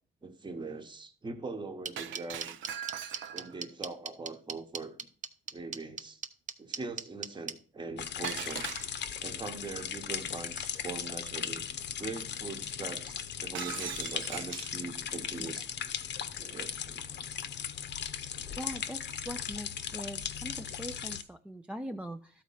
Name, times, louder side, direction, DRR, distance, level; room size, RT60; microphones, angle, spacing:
voice 1, 0.2-2.6 3.3-5.0 5.5-6.2 6.6-8.7 9.2-11.7 12.0-15.7 16.4-17.0 18.3-18.6, right 3 dB, 25° right, 1.1 m, -42 dB
sound 1, 1.8-7.5, right 6 dB, 40° right, 0.7 m, -36 dB
Shatter, 2.0-3.6 8.2-9.3 13.5-14.8, right 9 dB, 75° right, 0.5 m, -40 dB
sound 2, 8.0-21.2, left 8 dB, 60° left, 0.8 m, -38 dB
voice 2, 18.6-22.4, equal, 5° right, 0.4 m, -42 dB
12.5 x 4.2 x 5.6 m
cardioid pair, 90°, 20 cm